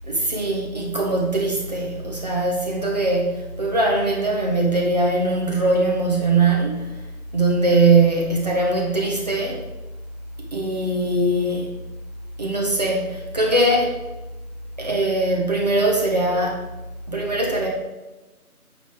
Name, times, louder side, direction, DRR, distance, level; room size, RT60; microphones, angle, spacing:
voice 1, 0.1-7.0 7.3-9.6 10.5-11.7 12.4-14.0 14.8-16.7 17.1-17.7, right 2 dB, 30° right, -2 dB, 1.1 m, -21 dB
8.8 x 4.1 x 5.0 m, 1.1 s
figure-of-eight pair, 170°, 45 cm